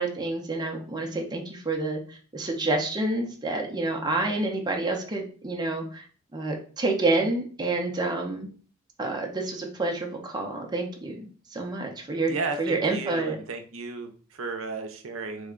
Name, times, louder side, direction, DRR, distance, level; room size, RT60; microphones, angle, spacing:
voice 1, 0.0-6.1 6.3-8.5 9.0-12.3 12.6-13.4, right 2 dB, 20° right, 1 dB, 0.6 m, -28 dB
voice 2, 12.3-15.5, right 4 dB, 80° right, 5 dB, 0.5 m, -34 dB
3.3 x 2.1 x 3.7 m, 0.41 s
head